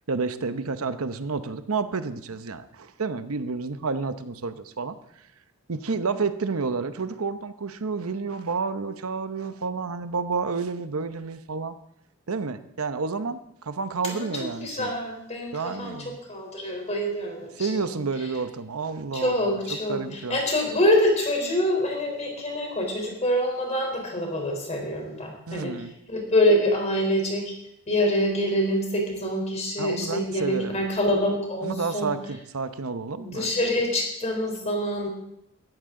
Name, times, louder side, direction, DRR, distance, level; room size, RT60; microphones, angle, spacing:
voice 1, 0.1-5.0 5.7-11.8 12.3-14.9 15.5-16.2 17.6-19.4 19.7-20.4 25.5-25.9 29.8-30.8 31.6-33.5, right 4 dB, 80° right, 11 dB, 0.8 m, -30 dB
voice 2, 14.0-17.7 19.1-25.7 26.1-27.5 27.9-32.1 33.2-35.1, left 1 dB, 30° left, 2 dB, 3.7 m, -26 dB
16.5 x 14.0 x 3.8 m, 0.78 s
head